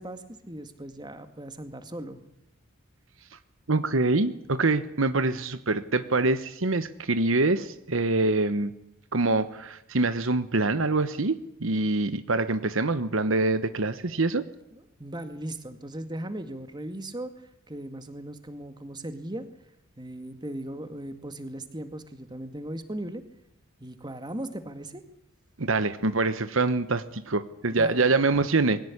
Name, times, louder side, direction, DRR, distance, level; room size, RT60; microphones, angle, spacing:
voice 1, 0.0-2.2 14.7-17.3 17.7-19.5 20.0-23.2 23.8-25.0 27.7-28.1, right 1 dB, 20° right, 9 dB, 2.1 m, -38 dB
voice 2, 3.7-8.7 9.1-14.4 25.6-28.8, right 3 dB, 65° right, 12 dB, 1.1 m, -25 dB
22.0 x 18.0 x 9.9 m, 0.81 s
head